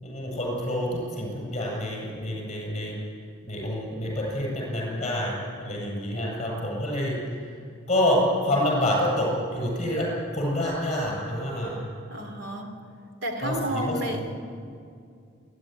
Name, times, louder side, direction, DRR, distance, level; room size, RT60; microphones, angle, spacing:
voice 1, 0.0-3.0 3.4-7.5 7.9-10.1 10.3-11.8 13.4-14.2, left 1 dB, 30° left, -3 dB, 7.8 m, -27 dB
voice 2, 12.1-12.8 13.2-14.2, right 1 dB, 65° right, 4 dB, 3.0 m, -31 dB
27.5 x 11.0 x 9.7 m, 2.3 s
head